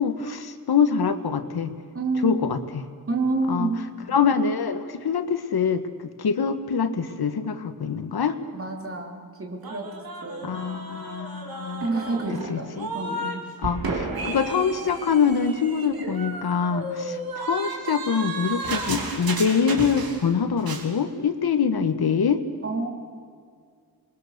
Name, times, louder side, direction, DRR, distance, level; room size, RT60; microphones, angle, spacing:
voice 1, 0.0-1.7 2.2-2.8 3.5-3.7 4.1-5.8 6.2-8.4 10.4-11.9 12.5-12.9 13.6-22.4, left 6 dB, 85° left, 9 dB, 1.6 m, -24 dB
voice 2, 1.9-2.5 3.1-3.8 8.5-9.9 10.2-10.5 11.8-13.4 22.6-22.9, right 3 dB, 35° right, 1 dB, 3.7 m, -28 dB
sound 1, 9.6-13.4 13.6-20.3 20.6-20.9, right 2 dB, 70° right, 3.3 m, -33 dB
27.5 x 22.0 x 6.8 m, 2.1 s
wide cardioid pair, 175°, 37 cm